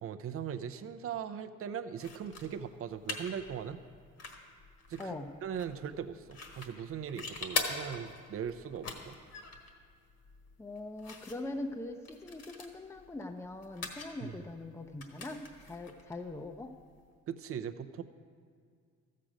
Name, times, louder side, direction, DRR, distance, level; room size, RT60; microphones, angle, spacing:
voice 1, 0.0-3.8 4.9-5.1 5.4-9.2 14.2-14.4 17.3-18.0, right 8 dB, 50° right, 9 dB, 0.6 m, -39 dB
sound 1, 2.0-17.1, left 4 dB, 55° left, 1.5 m, -44 dB
voice 2, 10.6-16.7, left 2 dB, 10° left, 5 dB, 0.6 m, -42 dB
13.5 x 7.6 x 5.0 m, 2.1 s
cardioid pair, 90°, 30 cm